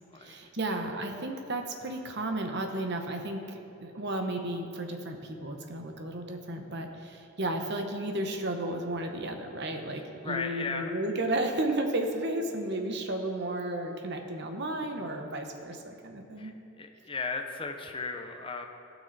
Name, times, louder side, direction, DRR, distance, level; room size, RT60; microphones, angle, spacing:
voice 1, 0.2-16.5, right 1 dB, 50° right, 5 dB, 0.9 m, -33 dB
voice 2, 10.2-10.9 14.8-14.9 16.4-16.5 16.8-18.7, left 4 dB, 25° left, 5 dB, 0.6 m, -36 dB
16.0 x 6.2 x 4.0 m, 2.7 s
head